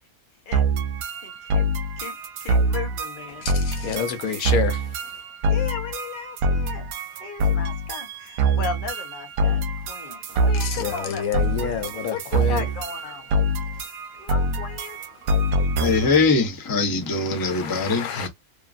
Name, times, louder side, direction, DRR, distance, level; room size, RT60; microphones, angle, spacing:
sound 1, 0.5-16.3, right 1 dB, 75° right, 1.0 m, -25 dB
voice 1, 1.2-1.7 2.0-3.4 5.5-6.9 7.2-13.3 14.2-15.0, left 6 dB, 45° left, 0.8 m, -36 dB
voice 2, 3.3-5.2 10.5-12.7 13.7-13.9 14.2-14.3 15.4-15.5 17.1-18.3, left 7 dB, 80° left, 1.3 m, -29 dB
voice 3, 15.8-18.3, left 3 dB, 25° left, 0.4 m, -22 dB
2.9 x 2.4 x 2.3 m
omnidirectional pair, 1.5 m